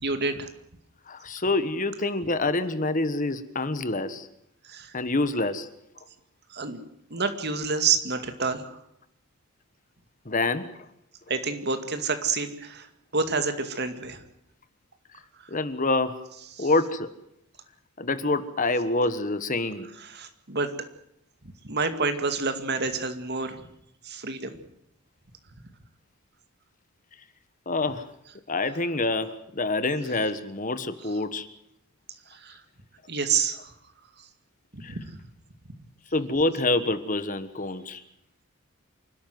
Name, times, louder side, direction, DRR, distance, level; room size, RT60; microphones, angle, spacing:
voice 1, 0.0-0.5 4.6-4.9 6.5-6.8 7.1-8.8 11.3-12.9 13.1-14.2 16.6-16.7 20.0-20.7 21.6-23.6 24.0-24.5 32.3-32.6 33.1-33.7 34.7-35.2, right 4 dB, 50° right, 8 dB, 2.3 m, -28 dB
voice 2, 1.1-4.3 4.9-5.7 10.2-10.6 15.5-16.2 16.6-17.1 18.0-19.9 27.7-28.0 28.5-31.5 34.8-34.9 36.1-38.0, left 2 dB, 35° left, 12 dB, 1.4 m, -26 dB
27.5 x 13.0 x 9.4 m, 0.76 s
head